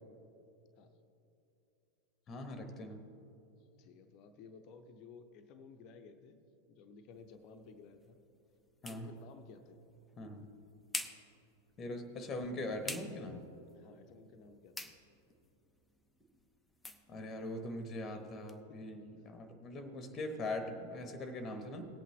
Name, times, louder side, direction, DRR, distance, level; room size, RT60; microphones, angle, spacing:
voice 1, 2.3-3.0 8.8-9.1 10.2-10.5 11.8-13.5 17.1-21.9, left 1 dB, 25° left, 8 dB, 1.1 m, -41 dB
voice 2, 3.8-8.2 8.9-9.8 13.7-14.9 18.7-18.8, left 5 dB, 40° left, 8 dB, 0.7 m, -56 dB
sound 1, 7.1-18.6, left 2 dB, 5° left, 0.6 m, -50 dB
18.5 x 8.2 x 3.1 m, 2.8 s
figure-of-eight pair, 90°, 0 cm